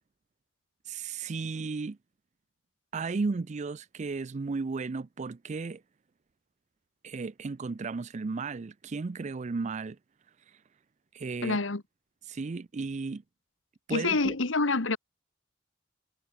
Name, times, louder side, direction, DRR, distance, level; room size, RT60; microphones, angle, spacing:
voice 1, 0.8-2.0 2.9-5.8 7.0-10.0 10.5-10.6 11.1-11.6 12.3-13.2 13.9-14.4, right 4 dB, 40° right, 0.4 m, -34 dB
voice 2, 11.4-11.8 13.9-15.0, left 3 dB, 80° left, 1.5 m, -27 dB
head